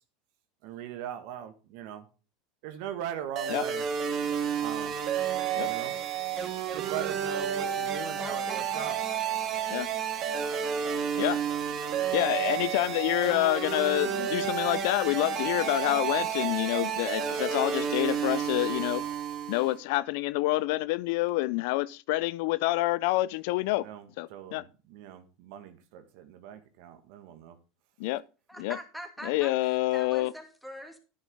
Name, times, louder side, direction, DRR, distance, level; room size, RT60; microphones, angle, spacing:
voice 1, 0.6-2.0 2.6-3.8 4.6-4.9 5.6-6.0 6.7-9.0 23.8-27.6, right 10 dB, 65° right, 1.7 m, -40 dB
sound 1, 3.4-19.8, right 8 dB, 45° right, 2.0 m, -31 dB
voice 2, 8.2-8.7 28.5-31.0, equal, ahead, 2.6 m, -43 dB
voice 3, 12.1-19.0 19.5-23.9 24.2-24.6 28.0-28.2 28.6-28.8 29.2-30.3, left 19 dB, 65° left, 0.4 m, -27 dB
10.0 x 9.8 x 3.7 m
hypercardioid pair, 105°, 0 cm